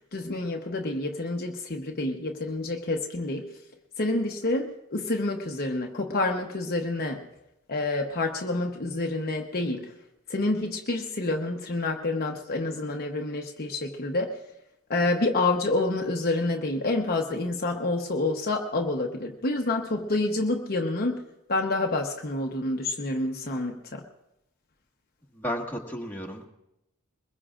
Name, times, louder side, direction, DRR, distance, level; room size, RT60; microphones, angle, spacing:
voice 1, 0.1-3.5 4.0-7.2 7.7-9.9 10.3-14.3 14.9-21.2 21.5-24.0, left 2 dB, 45° left, 1 dB, 1.0 m, -28 dB
voice 2, 25.3-26.5, equal, 10° left, -1 dB, 1.7 m, -33 dB
22.5 x 21.5 x 2.5 m, 0.87 s
head